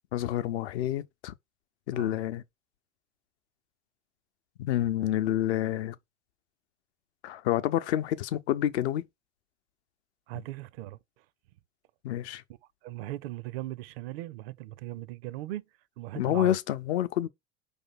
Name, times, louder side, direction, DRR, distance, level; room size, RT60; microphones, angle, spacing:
voice 1, 0.1-1.3 1.9-2.4 4.6-6.0 7.2-9.1 12.0-12.4 16.2-17.3, left 12 dB, 60° left, 0.7 m, -28 dB
voice 2, 10.3-11.0 12.8-15.6 16.0-16.6, right 16 dB, 55° right, 0.5 m, -38 dB
5.0 x 3.4 x 5.4 m
figure-of-eight pair, 75°, 37 cm